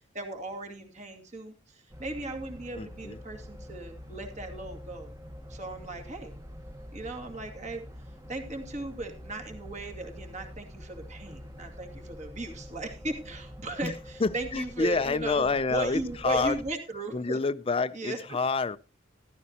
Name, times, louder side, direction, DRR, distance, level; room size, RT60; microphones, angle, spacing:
voice 1, 0.0-5.1 5.5-6.3 6.9-7.8 8.3-17.4 17.9-18.2, right 2 dB, 40° right, 2.4 m, -37 dB
sound 1, 1.9-16.7, equal, 15° right, 1.2 m, -46 dB
voice 2, 2.8-3.2 13.8-13.9 14.2-16.6 17.1-18.8, left 4 dB, 30° left, 0.5 m, -28 dB
13.5 x 13.5 x 2.9 m
head